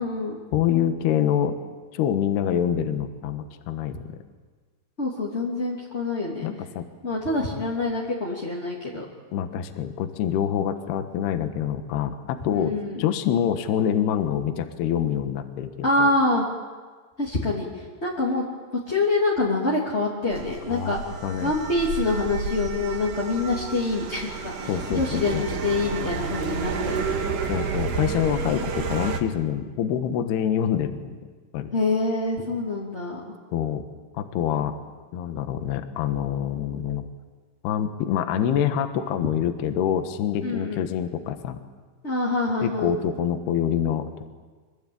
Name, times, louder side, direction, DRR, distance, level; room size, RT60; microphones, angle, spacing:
voice 1, 0.0-0.4 5.0-6.5 7.0-9.0 12.5-13.1 15.8-16.5 17.2-18.4 18.9-21.0 21.4-27.1 31.7-33.2 40.4-40.8 42.0-42.9, left 2 dB, 20° left, -4 dB, 2.0 m, -26 dB
voice 2, 0.5-1.6 1.9-4.2 6.4-6.9 9.3-16.1 20.7-20.9 21.2-21.5 24.7-25.4 27.5-31.2 31.5-31.7 33.5-33.9 34.1-34.8 35.1-37.1 37.6-41.6 42.6-44.1, left 9 dB, 70° left, 8 dB, 3.1 m, -26 dB
sound 1, 20.3-29.2, right 5 dB, 55° right, 2.9 m, -30 dB
26.0 x 23.0 x 8.7 m, 1.4 s
omnidirectional pair, 5.4 m